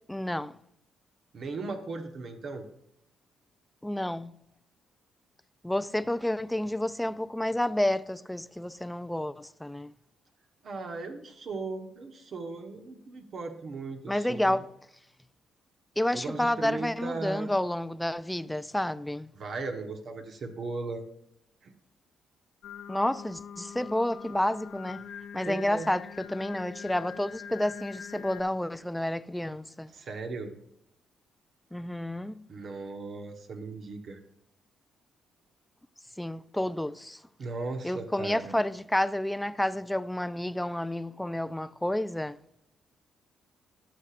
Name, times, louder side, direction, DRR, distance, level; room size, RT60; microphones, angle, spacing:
voice 1, 0.1-0.5 3.8-4.3 5.6-9.9 14.1-14.7 16.0-19.3 22.9-25.0 25.3-29.9 31.7-32.4 36.2-37.2 37.8-42.4, left 1 dB, 5° left, 0.4 m, -30 dB
voice 2, 1.3-2.7 10.6-14.6 16.1-17.5 19.3-21.0 21.6-21.7 25.4-25.9 29.9-30.6 32.5-34.2 37.4-38.5, right 3 dB, 55° right, 1.1 m, -37 dB
Singing, 22.6-28.4, left 8 dB, 65° left, 0.6 m, -43 dB
17.0 x 6.7 x 2.5 m
cardioid pair, 90°, 0 cm